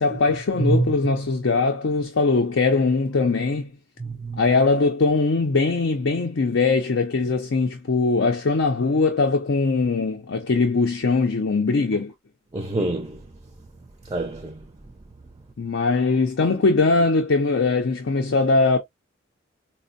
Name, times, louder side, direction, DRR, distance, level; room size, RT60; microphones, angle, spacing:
voice 1, 0.0-3.7 4.4-12.1 15.6-18.8, left 3 dB, 70° left, 0.5 m, -21 dB
voice 2, 0.6-0.9 4.0-4.6 12.5-13.2 14.1-14.6, right 2 dB, 20° right, 0.4 m, -25 dB
4.3 x 2.1 x 2.5 m
head